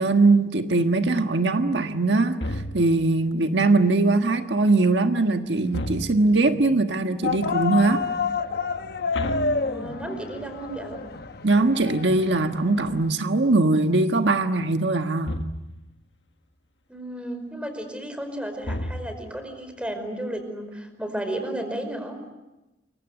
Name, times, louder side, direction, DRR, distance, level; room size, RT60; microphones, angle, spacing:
voice 1, 0.0-8.0 11.4-15.4, right 3 dB, 85° right, 1.4 m, -21 dB
sound 1, 2.4-3.2 5.7-6.5 9.1-10.3 15.2-15.9 18.6-19.5, left 1 dB, 90° left, 1.3 m, -32 dB
sound 2, 7.2-13.1, left 4 dB, 60° left, 1.0 m, -29 dB
voice 2, 9.6-11.0 16.9-22.2, right 1 dB, 5° right, 5.0 m, -33 dB
29.0 x 24.0 x 8.0 m
head